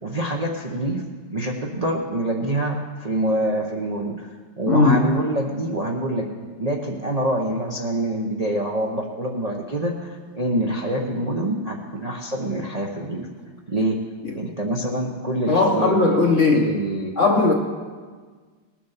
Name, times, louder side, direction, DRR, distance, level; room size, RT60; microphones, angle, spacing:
voice 1, 0.0-1.0 1.3-4.3 4.6-6.3 6.6-13.3 13.7-14.0 14.3-16.0 16.5-17.1, right 1 dB, 75° right, -1 dB, 0.3 m, -25 dB
voice 2, 4.7-5.1 14.2-14.4 15.5-16.7 17.2-17.5, left 3 dB, 55° left, 2 dB, 0.8 m, -18 dB
19.0 x 7.3 x 5.8 m, 1.5 s
omnidirectional pair, 2.4 m